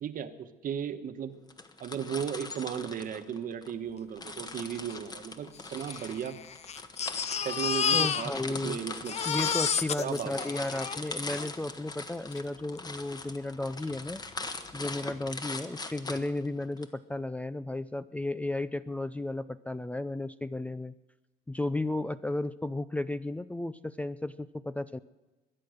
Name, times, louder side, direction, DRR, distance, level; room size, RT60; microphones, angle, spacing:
voice 1, 0.0-1.3 1.8-6.4 7.4-8.3 8.6-9.2 10.0-10.5, right 8 dB, 55° right, 9 dB, 1.3 m, -35 dB
sound 1, 1.5-3.7 4.2-16.8, left 3 dB, 25° left, 1.4 m, -41 dB
Crying sobbing, 4.6-4.7 4.9-5.0 5.8-8.7 8.9-11.5 12.3-12.4 12.8-12.9, left 7 dB, 40° left, 0.8 m, -31 dB
voice 2, 7.9-8.8 9.3-14.2 14.7-20.9 21.5-25.0, left 2 dB, 10° left, 14 dB, 0.4 m, -34 dB
22.0 x 9.6 x 6.5 m, 1.1 s
cardioid pair, 110°, 17 cm